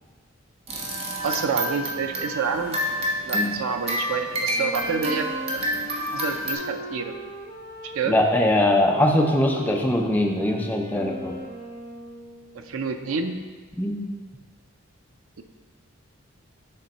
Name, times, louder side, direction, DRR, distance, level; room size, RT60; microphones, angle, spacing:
sound 1, 0.7-6.6, equal, 30° right, 0.7 m, -29 dB
voice 1, 1.2-2.8 3.2-5.6 6.1-7.1 7.9-8.2 12.5-13.4, right 5 dB, 85° right, 7 dB, 0.5 m, -28 dB
Wind instrument woodwind instrument, 4.4-13.0, equal, 45° right, 1.0 m, -39 dB
voice 2, 8.1-11.4 13.8-14.1, left 1 dB, 10° left, 1 dB, 0.5 m, -22 dB
6.6 x 3.4 x 4.2 m, 1.5 s
head